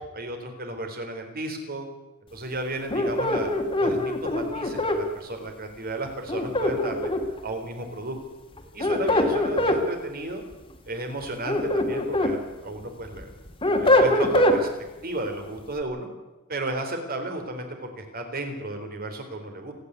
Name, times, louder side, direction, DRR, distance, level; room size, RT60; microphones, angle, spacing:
voice 1, 0.1-1.9 2.3-3.5 3.8-7.1 7.4-8.2 8.7-10.4 10.9-13.3 13.6-14.7 15.0-16.1 16.5-19.7, right 2 dB, 45° right, 5 dB, 3.9 m, -33 dB
sound 1, 2.9-5.0 6.3-7.4 8.6-9.8 11.2-12.3 12.8-14.6, left 1 dB, 25° left, 2.5 m, -23 dB
28.5 x 9.8 x 9.8 m, 1.1 s
head